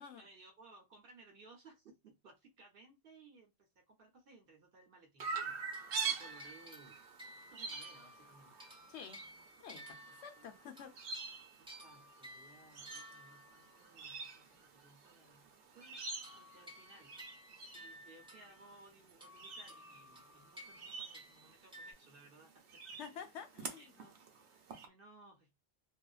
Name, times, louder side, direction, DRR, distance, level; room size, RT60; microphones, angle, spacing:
voice 1, 0.2-5.6 6.0-7.0 7.5-8.5 9.9-10.6 11.6-17.2 17.7-22.5 23.8-25.6, right 3 dB, 60° right, 0.9 m, -61 dB
Chirp tweet, 5.2-24.9, right 5 dB, 85° right, 1.0 m, -47 dB
sound 1, 5.5-14.0 16.2-18.8 19.1-21.9, equal, 10° right, 0.3 m, -55 dB
voice 2, 8.9-9.2 9.6-10.9 23.0-23.9, left 7 dB, 80° left, 0.9 m, -49 dB
2.6 x 2.4 x 2.3 m
omnidirectional pair, 1.1 m